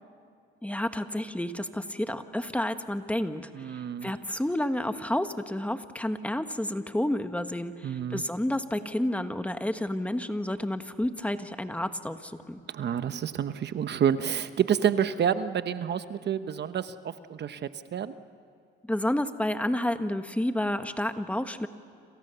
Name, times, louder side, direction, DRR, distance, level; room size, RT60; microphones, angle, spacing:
voice 1, 0.6-12.6 18.8-21.7, left 1 dB, 5° left, 8 dB, 1.4 m, -30 dB
voice 2, 3.5-4.1 7.8-8.2 12.7-18.2, right 8 dB, 60° right, 11 dB, 1.1 m, -29 dB
30.0 x 27.5 x 6.9 m, 2.4 s
cardioid pair, 90°, 20 cm